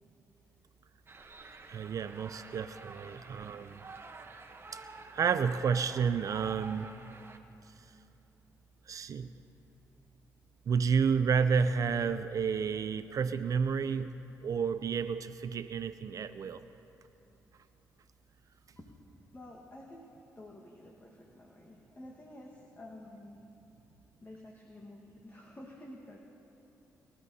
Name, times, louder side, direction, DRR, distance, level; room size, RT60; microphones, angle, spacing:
sound 1, 1.1-7.4, right 3 dB, 35° right, 1.0 m, -49 dB
voice 1, 1.7-3.8 4.7-4.8 5.1-6.9 8.9-9.3 10.7-14.1 14.4-16.7, right 6 dB, 55° right, 11 dB, 0.4 m, -30 dB
voice 2, 19.3-23.6 24.2-26.2, left 1 dB, 25° left, -1 dB, 1.5 m, -50 dB
22.5 x 13.5 x 2.8 m, 2.9 s
supercardioid pair, 60°, 7 cm